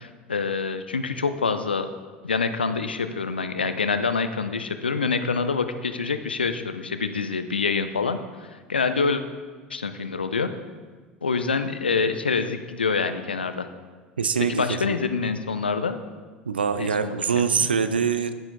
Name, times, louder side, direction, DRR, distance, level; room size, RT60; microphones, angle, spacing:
voice 1, 0.0-1.9 2.2-9.2 9.7-10.5 11.2-13.7 14.4-16.0 16.8-17.7, left 4 dB, 85° left, 10 dB, 0.5 m, -26 dB
voice 2, 14.2-14.8 16.5-18.3, right 6 dB, 80° right, 11 dB, 0.4 m, -24 dB
10.0 x 9.1 x 3.8 m, 1.4 s
figure-of-eight pair, 70°, 5 cm